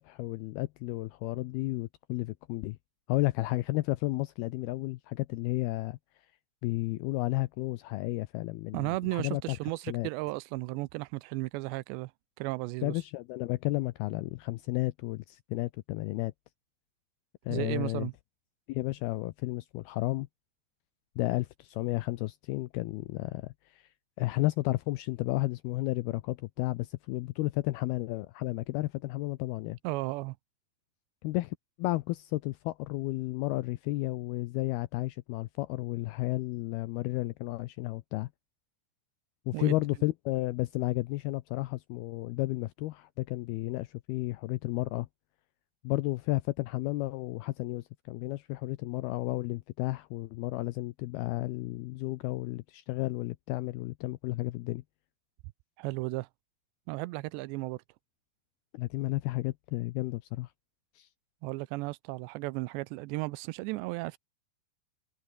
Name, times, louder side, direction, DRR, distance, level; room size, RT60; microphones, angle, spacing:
voice 1, 0.0-2.8 3.1-6.0 6.6-9.6 9.9-10.1 12.8-16.3 17.5-18.1 18.7-20.3 21.2-23.9 24.2-29.8 31.2-38.3 39.5-45.1 45.8-54.8 58.7-60.5 61.0-61.1, left 19 dB, 90° left, 2.3 m, -32 dB
voice 2, 8.7-12.1 12.4-12.9 17.5-18.1 29.8-30.4 39.5-39.8 55.8-56.3 56.9-57.8 61.4-64.2, right 22 dB, 85° right, 2.7 m, -34 dB
omnidirectional pair, 5.1 m